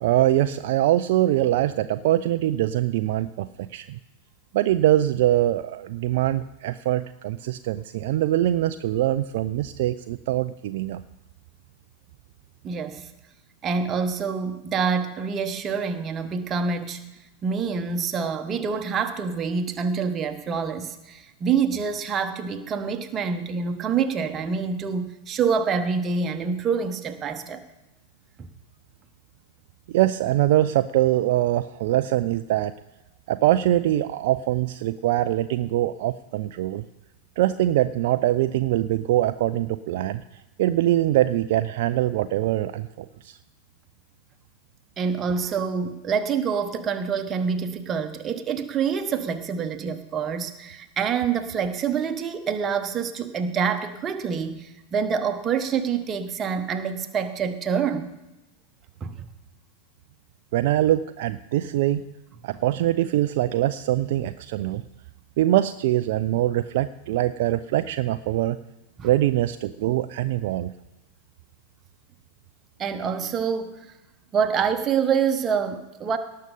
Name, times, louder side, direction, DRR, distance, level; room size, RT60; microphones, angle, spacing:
voice 1, 0.0-3.9 4.5-11.0 29.9-32.7 33.3-36.8 37.4-40.2 40.6-43.4 60.5-62.1 62.4-64.8 65.4-68.6 69.0-70.7, right 14 dB, 50° right, 11 dB, 0.4 m, -23 dB
voice 2, 12.6-13.1 13.6-17.0 17.4-27.6 28.4-28.5 45.0-58.1 59.0-59.2 69.0-69.1 72.8-73.7 74.3-76.2, right 6 dB, 25° right, 7 dB, 1.2 m, -26 dB
18.5 x 6.6 x 5.2 m, 0.99 s
figure-of-eight pair, 90°, 0 cm